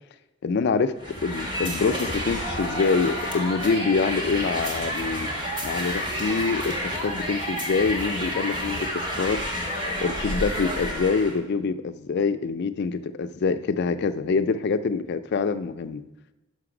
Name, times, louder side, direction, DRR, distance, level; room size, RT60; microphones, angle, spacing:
voice 1, 0.4-0.9 1.2-5.3 5.6-9.4 10.0-16.0, left 4 dB, 50° left, 11 dB, 0.3 m, -25 dB
sound 1, 1.0-11.4, equal, 20° right, 1.0 m, -30 dB
5.9 x 5.8 x 4.9 m, 1.0 s
head